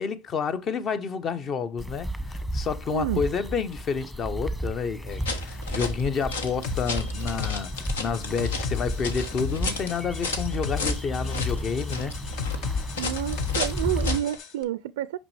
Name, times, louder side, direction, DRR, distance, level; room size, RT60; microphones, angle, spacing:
voice 1, 0.0-12.2, left 6 dB, 40° left, 0.9 m, -29 dB
sound 1, 1.8-14.2, equal, 10° left, 1.1 m, -33 dB
voice 2, 2.9-3.2 13.0-15.2, right 12 dB, 80° right, 0.3 m, -29 dB
sound 2, 5.1-14.4, left 4 dB, 90° left, 1.1 m, -35 dB
sound 3, 6.6-14.5, left 6 dB, 65° left, 1.1 m, -34 dB
5.9 x 5.4 x 3.3 m
hypercardioid pair, 85°, 0 cm